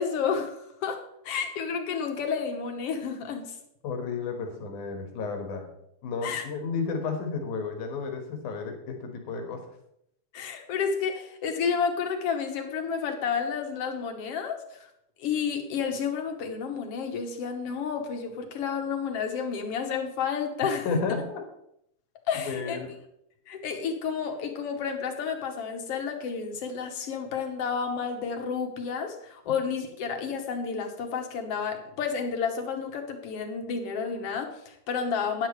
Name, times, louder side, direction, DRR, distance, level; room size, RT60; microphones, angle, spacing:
voice 1, 0.0-3.5 6.2-6.4 10.3-14.9 15.2-20.9 22.3-22.8 23.5-35.5, left 6 dB, 60° left, 5 dB, 2.0 m, -31 dB
voice 2, 3.8-5.7 6.0-9.6 20.8-21.4 22.4-22.9, left 4 dB, 85° left, 3 dB, 3.1 m, -32 dB
13.0 x 10.0 x 3.2 m, 0.76 s
omnidirectional pair, 3.4 m